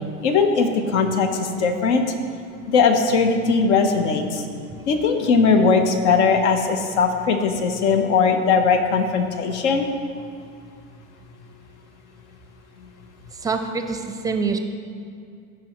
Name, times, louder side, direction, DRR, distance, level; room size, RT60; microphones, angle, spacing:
voice 1, 0.2-2.0 2.7-4.4 4.9-9.9, left 5 dB, 75° left, 5 dB, 1.1 m, -19 dB
voice 2, 13.4-14.6, right 4 dB, 10° right, 6 dB, 0.5 m, -25 dB
15.5 x 6.3 x 3.1 m, 2.4 s
supercardioid pair, 130°, 35 cm